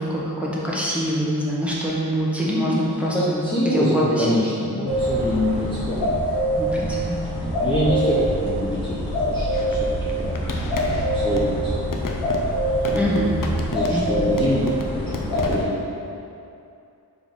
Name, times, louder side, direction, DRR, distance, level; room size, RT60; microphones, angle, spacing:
voice 1, 0.0-4.3 6.6-7.3 12.9-13.4 13.9-14.3, equal, 5° right, -7 dB, 1.3 m, -25 dB
voice 2, 2.4-6.2 6.8-10.4 10.8-11.9 13.7-15.9, left 1 dB, 10° left, -10 dB, 0.9 m, -26 dB
sound 1, 4.9-15.6, right 1 dB, 80° left, 1.4 m, -24 dB
sound 2, 9.5-11.5 11.9-14.1 14.4-15.7, left 3 dB, 55° left, 0.7 m, -33 dB
4.7 x 3.7 x 5.3 m, 2.6 s
wide cardioid pair, 70°, 39 cm